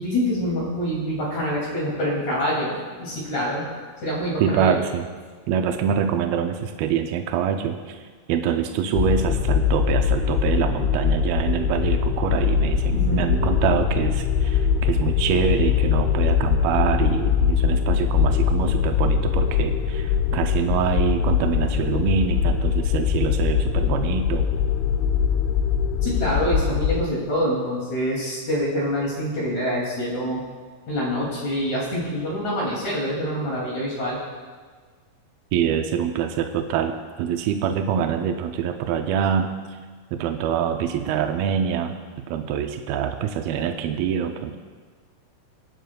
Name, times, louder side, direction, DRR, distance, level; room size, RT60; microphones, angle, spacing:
voice 1, 0.0-3.7 4.0-4.8 12.9-13.3 26.0-30.4 30.9-34.2, equal, 45° left, -5 dB, 3.4 m, -26 dB
voice 2, 4.4-5.1 5.5-8.0 8.3-24.5 35.5-39.5 40.1-42.0 42.3-44.6, right 8 dB, 85° right, 5 dB, 2.1 m, -25 dB
sound 1, 8.9-27.0, left 7 dB, 90° left, 2.1 m, -22 dB
24.0 x 9.3 x 2.3 m, 1.5 s
omnidirectional pair, 4.9 m